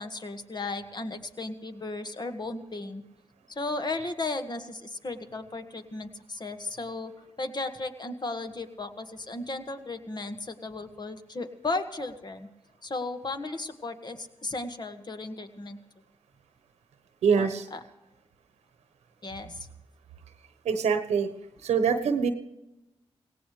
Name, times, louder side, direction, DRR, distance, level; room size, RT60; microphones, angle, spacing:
voice 1, 0.0-3.0 3.5-7.1 7.4-12.5 12.8-15.8 17.4-17.8 19.2-19.7, left 3 dB, 40° left, 7 dB, 1.8 m, -35 dB
voice 2, 17.2-17.6 20.6-21.3 21.6-22.3, right 6 dB, 85° right, 8 dB, 1.2 m, -24 dB
18.0 x 17.5 x 3.3 m, 0.95 s
cardioid pair, 50°, 11 cm